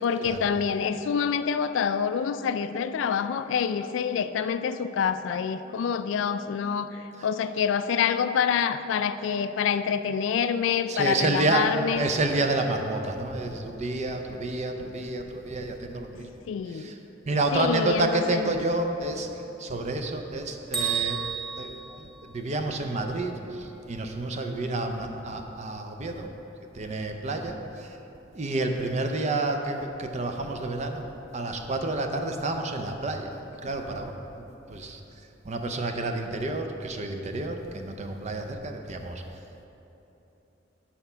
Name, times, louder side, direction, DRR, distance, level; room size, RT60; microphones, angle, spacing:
voice 1, 0.0-12.1 16.1-16.9 17.5-18.5, left 7 dB, 70° left, 12 dB, 0.3 m, -27 dB
voice 2, 10.9-16.3 16.7-17.0 17.3-21.3 21.6-26.3 26.7-28.0 28.3-31.1 31.3-35.0 35.4-39.2, right 2 dB, 35° right, 5 dB, 0.5 m, -29 dB
Bell, 20.7-22.8, right 7 dB, ahead, 1.5 m, -32 dB
8.1 x 4.2 x 5.5 m, 3.0 s
head